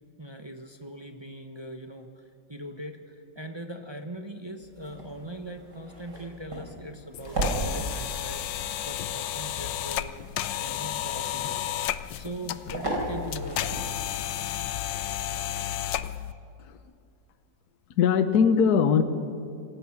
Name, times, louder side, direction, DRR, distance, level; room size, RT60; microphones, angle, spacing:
voice 1, 0.2-2.2 2.5-8.4 8.8-10.2 10.6-14.1, right 1 dB, 25° right, 5 dB, 0.6 m, -41 dB
sound 1, 4.6-14.2, right 1 dB, 60° right, 4.8 m, -37 dB
sound 2, 7.1-16.3, left 12 dB, 75° left, 1.3 m, -32 dB
voice 2, 18.0-19.0, left 6 dB, 60° left, 9 dB, 1.4 m, -20 dB
27.0 x 18.5 x 5.9 m, 2.4 s
omnidirectional pair, 2.0 m